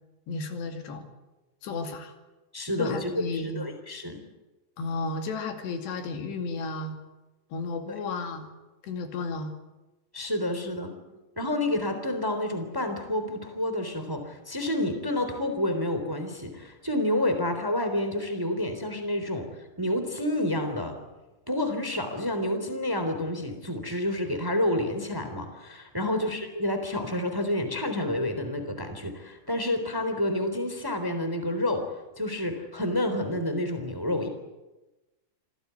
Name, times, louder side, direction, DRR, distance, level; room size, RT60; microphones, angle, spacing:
voice 1, 0.3-1.0 1.6-2.1 2.8-3.6 4.8-7.0 7.5-8.5 8.8-9.5 26.0-26.3, left 3 dB, 85° left, 5 dB, 4.6 m, -33 dB
voice 2, 2.5-4.2 7.9-8.0 10.1-10.9 11.4-19.5 19.8-20.9 21.5-34.3, left 1 dB, 5° right, 7 dB, 2.6 m, -29 dB
27.0 x 17.0 x 9.5 m, 1.1 s
omnidirectional pair, 4.7 m